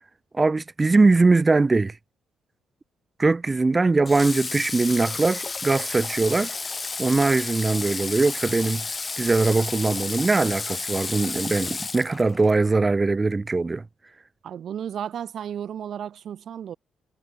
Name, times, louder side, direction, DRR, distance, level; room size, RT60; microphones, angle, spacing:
voice 1, 0.3-2.0 3.2-6.5 7.0-8.9 9.2-13.8, right 3 dB, 25° right, 4.4 m, -21 dB
Water / Water tap faucet, 4.1-12.6, left 4 dB, 30° left, 2.8 m, -32 dB
voice 2, 14.4-16.8, right 9 dB, 60° right, 4.7 m, -33 dB
cardioid pair, 90°, 0 cm